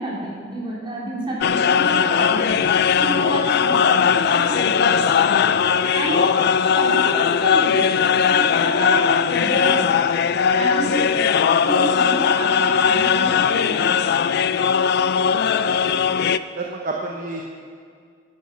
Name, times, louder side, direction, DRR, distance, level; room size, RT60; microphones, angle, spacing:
voice 1, 0.0-2.6 2.9-5.1 5.9-6.3 6.7-10.0 10.5-11.1 11.6-13.9, right 1 dB, 25° right, -5 dB, 3.1 m, -29 dB
sound 1, 1.4-16.4, left 7 dB, 55° left, 0.3 m, -19 dB
voice 2, 15.6-15.9 16.6-17.4, right 3 dB, 45° right, 0 dB, 0.9 m, -30 dB
11.5 x 9.3 x 5.9 m, 2.1 s
head